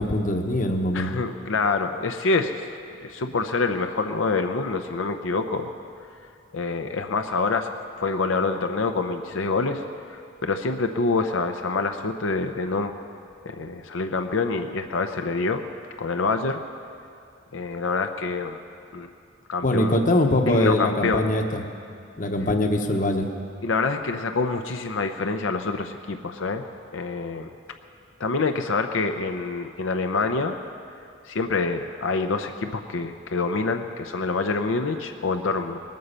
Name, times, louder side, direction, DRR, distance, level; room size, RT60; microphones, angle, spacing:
voice 1, 0.0-1.1 19.6-21.6 22.2-23.3, left 1 dB, 40° left, 4 dB, 1.0 m, -22 dB
voice 2, 0.9-2.5 3.0-5.7 6.5-9.8 10.1-12.9 13.4-15.6 16.0-16.6 17.5-18.6 18.9-19.1 19.5-20.0 20.5-21.3 23.6-26.6 26.9-27.5 28.2-30.6 31.3-35.8, left 3 dB, 90° left, 6 dB, 0.7 m, -26 dB
20.0 x 9.3 x 6.8 m, 2.4 s
head